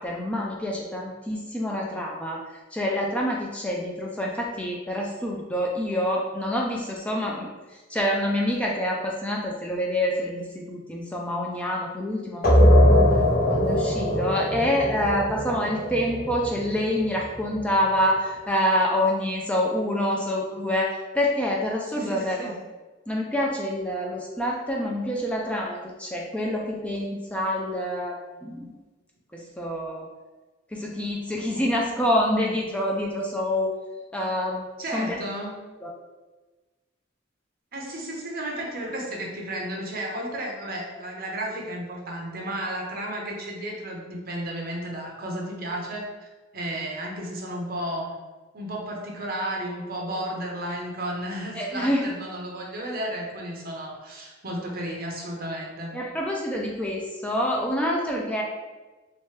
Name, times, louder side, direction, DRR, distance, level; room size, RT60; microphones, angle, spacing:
voice 1, 0.0-2.4 2.7-7.5 7.9-13.0 13.5-22.5 23.1-28.7 29.3-30.1 30.7-33.7 34.1-34.6 34.9-35.2 35.8-35.9 51.6-52.1 55.9-58.4, left 1 dB, 5° left, -2 dB, 0.3 m, -27 dB
sound 1, 12.4-17.8, equal, 50° left, 1.4 m, -21 dB
voice 2, 21.9-22.6 34.8-35.6 37.7-46.3 46.5-48.2 48.5-55.9, right 1 dB, 50° right, -1 dB, 0.8 m, -33 dB
3.2 x 3.1 x 3.2 m, 1.2 s
head